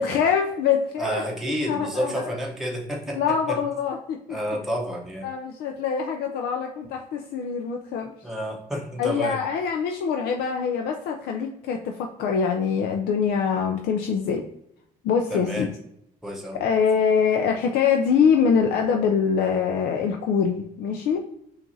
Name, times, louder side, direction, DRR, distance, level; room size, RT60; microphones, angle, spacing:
voice 1, 0.0-1.2 1.7-2.3 3.1-4.4 5.2-8.1 9.0-14.5 15.0-15.7 16.6-21.2, left 6 dB, 90° left, 3 dB, 0.4 m, -24 dB
voice 2, 1.0-3.6 4.3-5.3 8.2-9.4 15.3-15.7 16.2-16.6, equal, ahead, -1 dB, 0.7 m, -30 dB
5.9 x 2.5 x 2.6 m, 0.76 s
cardioid pair, 130°, 16 cm